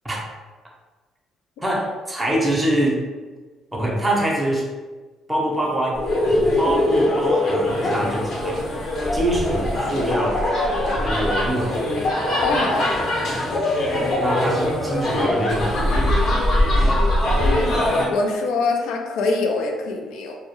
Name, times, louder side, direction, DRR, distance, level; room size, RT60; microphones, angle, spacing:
voice 1, 1.6-3.0 3.8-4.7 5.3-8.6 9.1-10.4 10.9-11.8 13.8-15.7, right 1 dB, 10° right, -2 dB, 0.6 m, -24 dB
sound 1, 5.9-18.1, left 1 dB, 55° left, 0.7 m, -21 dB
voice 2, 12.4-12.9 17.4-17.8 18.1-20.4, left 3 dB, 80° left, 2 dB, 0.3 m, -24 dB
2.1 x 2.1 x 2.9 m, 1.3 s
cardioid pair, 95°, 0 cm